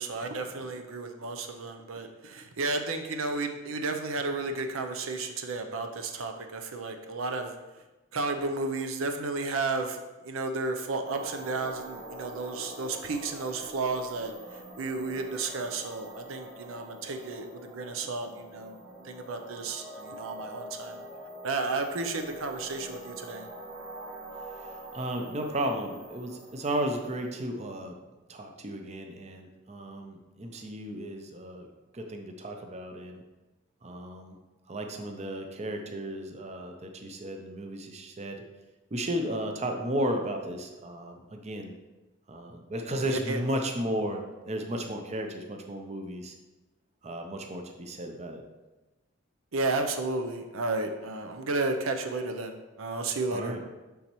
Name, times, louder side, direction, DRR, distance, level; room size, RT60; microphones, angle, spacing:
voice 1, 0.0-7.5 8.1-10.0 10.2-14.3 14.8-17.5 17.7-18.8 19.0-21.0 21.4-23.5 43.1-43.4 49.5-53.6, right 3 dB, 85° right, 6 dB, 0.6 m, -32 dB
sound 1, 11.0-27.4, right 1 dB, 55° right, 2.2 m, -45 dB
voice 2, 24.6-28.0 28.3-31.7 31.9-33.2 33.8-34.4 34.7-38.4 38.9-41.7 42.3-46.3 47.0-48.4 53.3-53.6, right 1 dB, 35° right, 4 dB, 0.6 m, -34 dB
7.0 x 5.4 x 3.1 m, 1.1 s
head